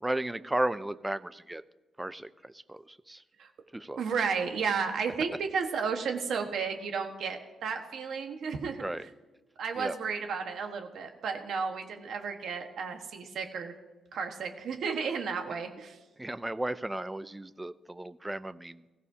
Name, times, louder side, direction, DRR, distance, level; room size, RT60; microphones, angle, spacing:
voice 1, 0.0-1.6 2.0-3.2 3.7-4.0 8.8-9.0 9.8-10.0 16.2-18.8, right 1 dB, 10° right, 14 dB, 0.3 m, -34 dB
voice 2, 4.0-8.8 9.6-13.7 14.1-16.0, right 5 dB, 60° right, 4 dB, 1.4 m, -33 dB
20.5 x 15.5 x 2.8 m, 1.2 s
wide cardioid pair, 175°, 0 cm